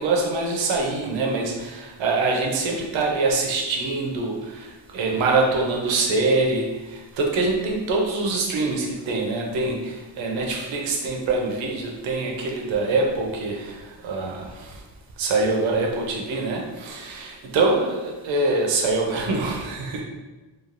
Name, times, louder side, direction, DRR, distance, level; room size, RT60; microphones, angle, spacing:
voice 1, 0.0-4.7 4.9-6.7 7.2-13.8 14.0-14.5 15.2-20.0, right 3 dB, 85° right, 0 dB, 0.7 m, -24 dB
3.2 x 2.3 x 2.5 m, 1.2 s
cardioid pair, 70°, 45 cm